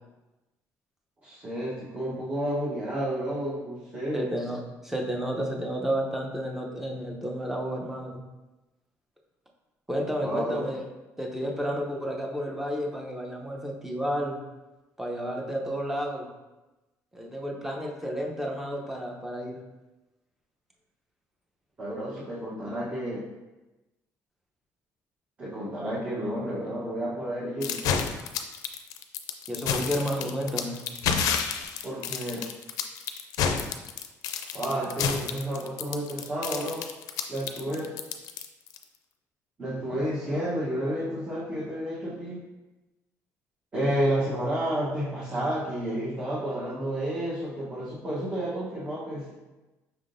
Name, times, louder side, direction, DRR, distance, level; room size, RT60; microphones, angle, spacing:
voice 1, 1.2-4.3 10.2-10.6 21.8-23.2 25.4-27.8 31.8-32.4 34.5-36.9 37.3-37.9 39.6-42.4 43.7-49.3, right 1 dB, 25° right, -8 dB, 1.0 m, -31 dB
voice 2, 4.1-8.2 9.9-10.8 11.2-14.4 15.0-16.3 17.1-19.6 29.5-30.8, equal, 5° right, 0 dB, 0.7 m, -31 dB
sound 1, 27.6-38.8, left 7 dB, 80° left, 0.4 m, -30 dB
5.5 x 3.6 x 2.6 m, 1.1 s
cardioid pair, 130°, 6 cm